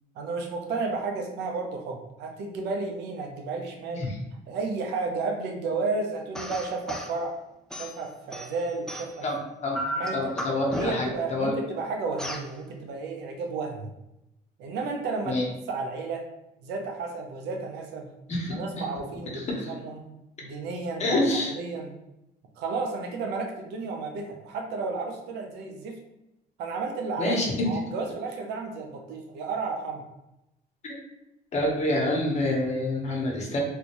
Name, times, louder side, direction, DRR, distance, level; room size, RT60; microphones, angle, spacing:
voice 1, 0.1-4.0 4.5-7.3 7.7-9.3 9.9-10.3 10.8-13.9 14.6-15.4 15.7-16.2 16.6-18.1 18.5-20.0 20.4-21.9 22.6-26.0 26.6-27.4 27.7-30.0, right 4 dB, 85° right, 2 dB, 0.7 m, -32 dB
sound 1, 6.3-7.1 7.7-9.3 9.7-11.2 12.2-12.5, equal, 5° left, 0.3 m, -34 dB
voice 2, 9.2-9.8 10.1-11.6 15.2-15.4 18.3-18.5 19.3-19.7 21.0-21.5 27.2-27.7 30.8-30.9 31.5-33.6, left 2 dB, 40° left, -1 dB, 1.1 m, -27 dB
3.3 x 2.7 x 3.0 m, 0.90 s
cardioid pair, 110°, 17 cm